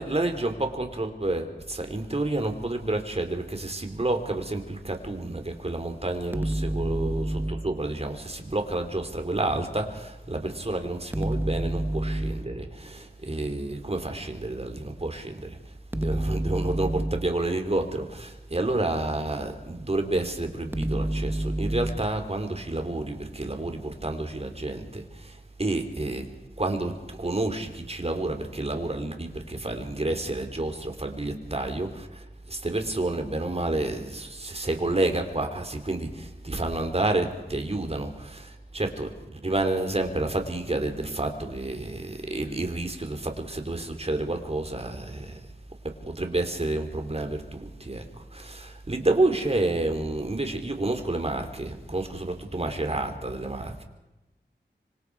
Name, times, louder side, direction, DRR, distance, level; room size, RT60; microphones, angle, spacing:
voice 1, 0.0-26.3 26.6-45.5 45.8-53.8, right 2 dB, 35° right, 5 dB, 3.3 m, -30 dB
sound 1, 6.3-7.8 11.1-12.6 15.9-17.4 20.7-22.2, right 1 dB, 10° right, 0.8 m, -28 dB
26.0 x 25.5 x 4.8 m, 1.0 s
wide cardioid pair, 85°, 19 cm